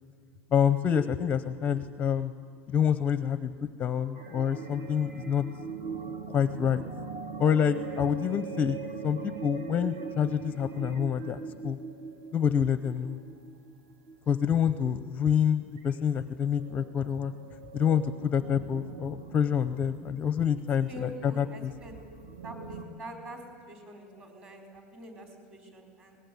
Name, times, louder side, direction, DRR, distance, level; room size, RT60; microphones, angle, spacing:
voice 1, 0.5-2.3 2.7-3.5 3.8-5.4 6.3-6.8 7.4-8.8 9.0-11.8 12.3-13.2 14.3-17.3 17.7-21.7, left 8 dB, 20° left, 12 dB, 0.7 m, -27 dB
sound 1, 4.1-14.8 15.3-15.4 15.8-16.0 16.4-22.9, right 5 dB, 50° right, 2.5 m, -41 dB
voice 2, 20.9-21.9 22.4-23.4 23.7-26.2, right 1 dB, 25° right, 3 dB, 4.5 m, -45 dB
23.5 x 20.0 x 9.4 m, 2.2 s
supercardioid pair, 160°, 7 cm